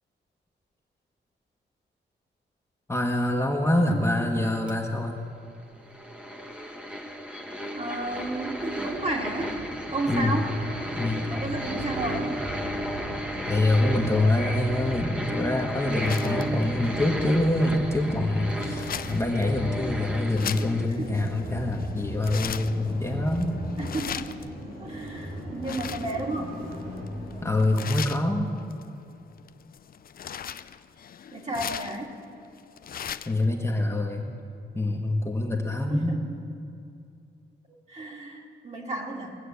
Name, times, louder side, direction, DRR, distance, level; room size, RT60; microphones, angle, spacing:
voice 1, 2.9-5.2 10.1-10.4 11.0-11.3 13.5-23.6 27.4-28.5 33.3-34.3 34.7-36.2, left 1 dB, 15° left, 0 dB, 1.4 m, -25 dB
sound 1, 4.7-4.8 5.9-20.9, equal, 5° right, 1.4 m, -34 dB
voice 2, 7.7-9.5 9.9-10.5 11.3-12.4 21.0-21.2 23.8-24.3 24.8-26.6 31.3-32.2 35.7-36.4 37.9-39.4, right 2 dB, 35° right, -1 dB, 2.4 m, -32 dB
sound 2, 8.0-27.5, equal, 60° right, 4.1 m, -38 dB
sound 3, 15.4-33.4, left 8 dB, 50° left, 0.5 m, -40 dB
21.5 x 7.2 x 8.4 m, 2.5 s
cardioid pair, 105°, 19 cm